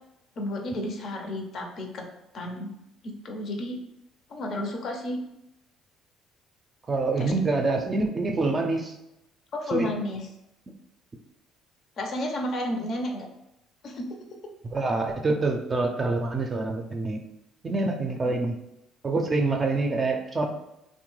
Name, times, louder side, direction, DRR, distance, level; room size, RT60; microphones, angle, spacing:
voice 1, 0.4-2.0 2.3-2.7 3.0-3.8 4.3-5.2 7.2-7.3 9.5-10.2 12.0-13.3 13.8-14.1 18.2-18.5, left 1 dB, 55° left, 3 dB, 0.6 m, -32 dB
voice 2, 6.9-9.0 9.7-9.9 14.7-17.2 17.6-18.6 19.0-20.5, right 3 dB, 35° right, 2 dB, 0.4 m, -26 dB
2.8 x 2.1 x 3.1 m, 0.87 s
supercardioid pair, 75°, 0 cm